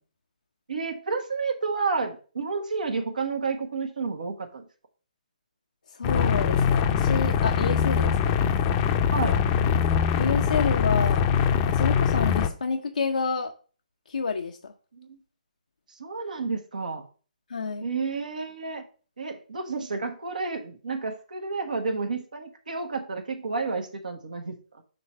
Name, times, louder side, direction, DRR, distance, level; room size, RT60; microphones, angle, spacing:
voice 1, 0.7-4.6 9.1-9.4 15.0-15.2 15.9-17.1 17.8-18.8 19.2-24.8, right 4 dB, 75° right, 4 dB, 1.2 m, -31 dB
voice 2, 5.9-8.5 10.2-11.3 11.7-13.5 14.1-14.7 17.5-17.9, left 5 dB, 75° left, 3 dB, 0.7 m, -29 dB
sound 1, 6.0-12.5, left 7 dB, 30° left, 0.6 m, -23 dB
6.8 x 3.2 x 5.4 m, 0.38 s
figure-of-eight pair, 140°, 4 cm